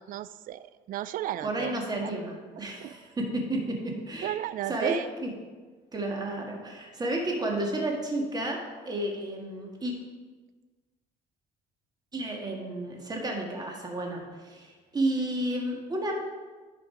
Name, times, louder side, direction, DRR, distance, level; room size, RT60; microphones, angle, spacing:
voice 1, 0.0-1.7 2.0-2.4 2.7-3.0 4.2-5.1, right 12 dB, 55° right, 15 dB, 0.4 m, -34 dB
voice 2, 1.4-4.3 4.7-5.0 5.2-5.3 5.9-8.6 8.8-9.9 12.1-16.1, right 1 dB, 25° right, 0 dB, 1.7 m, -31 dB
10.0 x 5.2 x 4.8 m, 1.4 s
cardioid pair, 110°, 17 cm